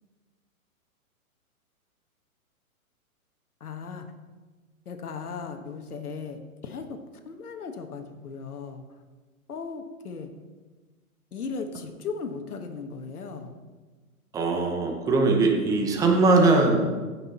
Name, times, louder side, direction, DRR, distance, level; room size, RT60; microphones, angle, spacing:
voice 1, 3.6-4.1 4.8-7.0 7.2-8.8 9.5-10.3 11.3-13.5, left 5 dB, 85° left, 6 dB, 1.5 m, -37 dB
voice 2, 14.3-16.8, right 3 dB, 10° right, 2 dB, 0.8 m, -21 dB
16.0 x 6.1 x 4.2 m, 1.3 s
hypercardioid pair, 150°, 44 cm